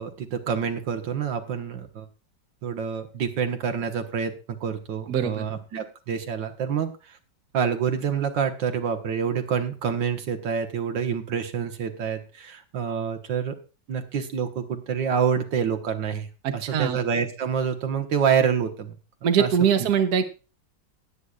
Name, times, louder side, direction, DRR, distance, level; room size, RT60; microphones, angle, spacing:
voice 1, 0.0-2.1 2.6-7.2 7.5-13.6 13.9-16.3 16.5-19.0 19.4-19.5 19.8-19.9, right 7 dB, 85° right, 6 dB, 1.9 m, -27 dB
voice 2, 5.1-5.5 16.4-17.0 19.2-20.2, right 8 dB, 60° right, 8 dB, 1.5 m, -22 dB
20.0 x 8.1 x 2.4 m, 0.33 s
omnidirectional pair, 1.9 m